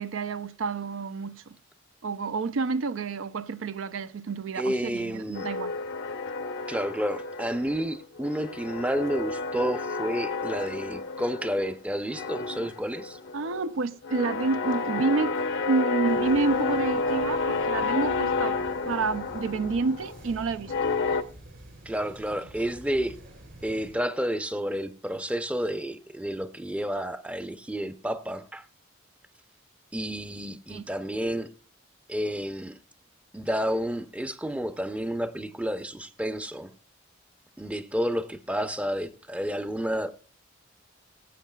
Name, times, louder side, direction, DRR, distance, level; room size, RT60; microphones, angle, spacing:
voice 1, 0.0-1.6 2.0-5.7 13.3-15.4 15.7-18.6 18.8-20.7 30.7-30.8, right 4 dB, 80° right, 0.5 m, -29 dB
voice 2, 4.5-5.5 6.7-13.2 21.9-23.2 23.6-28.6 29.9-31.5 32.1-32.8 33.3-36.7 37.6-40.1, equal, 5° right, 0.6 m, -30 dB
sound 1, 5.3-7.9 8.2-11.8 12.1-21.2, left 4 dB, 70° left, 0.8 m, -30 dB
sound 2, 16.0-24.0, right 1 dB, 65° right, 3.2 m, -48 dB
20.5 x 8.1 x 2.3 m
head